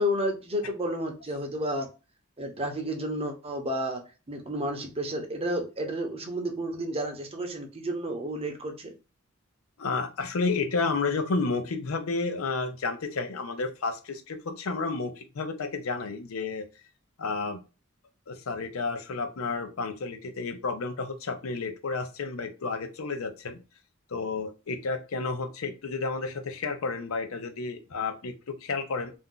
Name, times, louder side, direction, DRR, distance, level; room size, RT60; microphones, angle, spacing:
voice 1, 0.0-1.9 2.4-4.0 4.3-8.9, equal, 30° right, 3 dB, 0.7 m, -31 dB
voice 2, 9.8-16.7 17.2-17.6 18.3-23.6 24.1-29.1, left 4 dB, 90° left, 7 dB, 0.6 m, -31 dB
2.6 x 2.2 x 3.6 m, 0.31 s
head